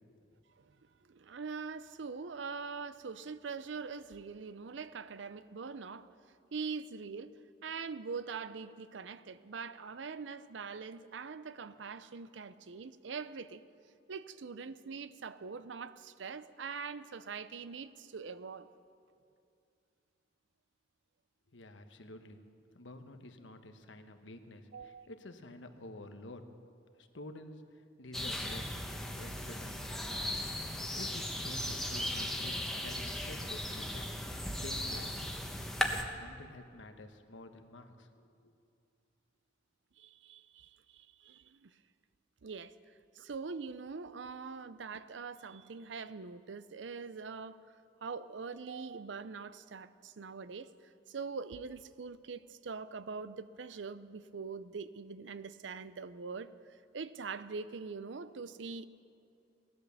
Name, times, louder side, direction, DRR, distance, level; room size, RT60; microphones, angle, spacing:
voice 1, 0.6-6.1 6.5-13.6 14.1-18.7 24.7-25.1 40.0-41.7 42.4-47.7 48.0-58.8, right 5 dB, 75° right, 14 dB, 0.6 m, -43 dB
voice 2, 21.5-22.4 22.7-26.4 27.0-27.6 28.0-28.8 29.1-29.3 29.6-30.4 30.7-32.6 32.8-34.2 34.6-35.3 36.1-38.5, left 2 dB, 80° left, 7 dB, 1.1 m, -50 dB
sound 1, 28.1-36.0, left 1 dB, ahead, 1.0 m, -37 dB
17.5 x 11.0 x 6.9 m, 2.5 s
head